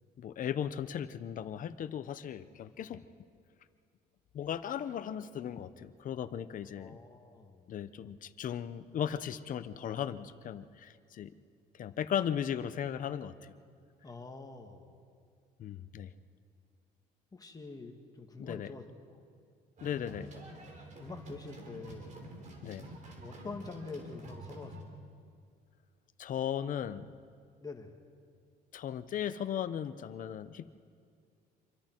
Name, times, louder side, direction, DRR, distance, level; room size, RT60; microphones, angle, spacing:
voice 1, 0.2-3.0 4.3-7.0 7.7-11.3 11.7-13.5 15.6-16.1 18.4-18.7 19.8-20.3 22.6-22.8 26.2-27.1 28.7-30.8, left 9 dB, 50° left, 12 dB, 0.9 m, -37 dB
voice 2, 6.7-7.7 14.0-15.0 17.3-19.2 21.0-22.2 23.2-25.0 27.6-28.0, left 3 dB, 20° left, 4 dB, 1.8 m, -46 dB
sound 1, 19.8-24.8, right 1 dB, 45° right, 3.8 m, -48 dB
27.0 x 23.5 x 4.6 m, 2.3 s
cardioid pair, 110°, 17 cm